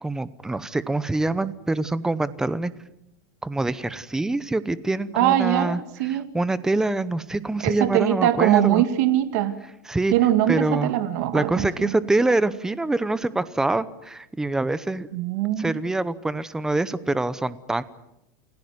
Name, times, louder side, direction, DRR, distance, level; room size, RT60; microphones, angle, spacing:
voice 1, 0.0-2.7 3.4-5.8 6.1-8.8 9.8-10.1 10.5-10.9 11.3-15.1 15.6-17.8, right 2 dB, 5° right, 16 dB, 0.8 m, -25 dB
voice 2, 5.1-6.3 7.6-9.5 10.1-11.9 15.1-15.7, right 12 dB, 55° right, 10 dB, 2.0 m, -22 dB
29.0 x 16.5 x 9.5 m, 0.88 s
supercardioid pair, 165°, 10 cm